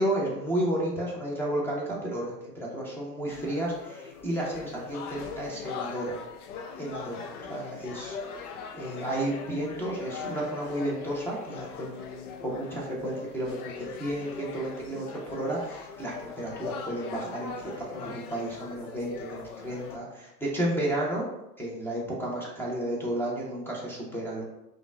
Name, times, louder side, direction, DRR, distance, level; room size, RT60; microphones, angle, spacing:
voice 1, 0.0-6.2 6.8-8.2 8.7-21.2 21.6-24.4, right 1 dB, 5° left, -4 dB, 0.8 m, -32 dB
sound 1, 3.3-20.0, left 5 dB, 65° left, 0.6 m, -41 dB
5.0 x 2.4 x 2.3 m, 0.88 s
hypercardioid pair, 100°, 49 cm